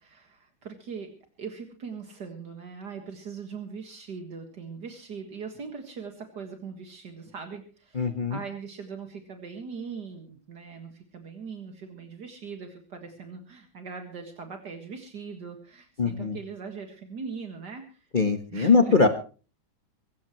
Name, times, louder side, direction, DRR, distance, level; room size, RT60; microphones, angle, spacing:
voice 1, 0.0-18.1 18.5-19.1, right 5 dB, 70° right, 5 dB, 2.4 m, -40 dB
voice 2, 7.9-8.4 16.0-16.4 18.1-19.1, left 4 dB, 30° left, 6 dB, 1.3 m, -22 dB
24.0 x 15.0 x 3.1 m, 0.36 s
omnidirectional pair, 1.9 m